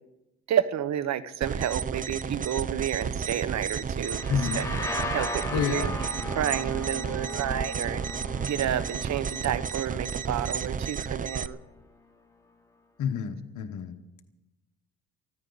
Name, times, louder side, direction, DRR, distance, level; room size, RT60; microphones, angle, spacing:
voice 1, 0.5-4.2 4.5-4.6 5.1-5.9 6.4-8.0 8.4-11.6, right 10 dB, 65° right, 15 dB, 0.9 m, -30 dB
sound 1, 1.4-11.5, right 6 dB, 25° right, 0.5 m, -32 dB
sound 2, 4.0-11.5, left 2 dB, 10° left, 2.6 m, -38 dB
voice 2, 4.3-4.6 5.5-6.0 13.0-13.9, left 8 dB, 75° left, 5 dB, 1.2 m, -29 dB
24.0 x 14.0 x 4.0 m, 0.99 s
cardioid pair, 90°, 30 cm